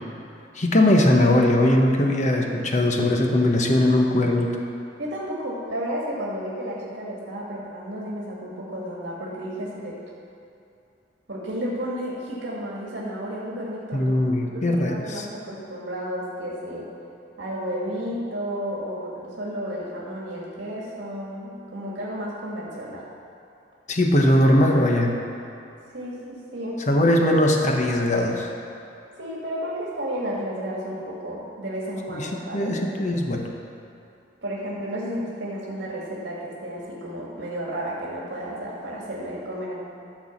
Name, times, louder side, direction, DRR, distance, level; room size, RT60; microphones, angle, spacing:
voice 1, 0.5-4.6 13.9-15.3 23.9-25.2 26.9-28.5 32.1-33.5, left 1 dB, 40° left, 2 dB, 1.0 m, -20 dB
voice 2, 5.0-10.0 11.3-14.2 14.5-16.9 17.4-23.0 25.9-26.9 29.2-32.7 34.4-39.7, equal, 75° right, -5 dB, 1.9 m, -32 dB
13.5 x 4.7 x 7.2 m, 2.6 s
head